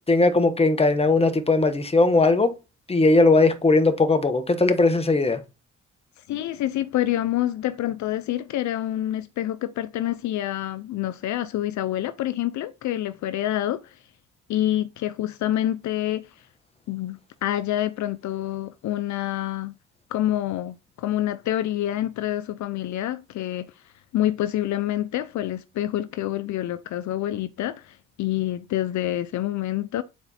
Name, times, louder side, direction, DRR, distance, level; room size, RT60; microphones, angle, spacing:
voice 1, 0.1-2.5 2.9-5.4, left 3 dB, 20° left, 1.2 m, -19 dB
voice 2, 6.3-13.9 14.5-16.3 16.9-19.7 20.1-23.7 24.1-30.0, left 13 dB, 70° left, 0.6 m, -27 dB
9.4 x 4.3 x 4.2 m
cardioid pair, 90°, 30 cm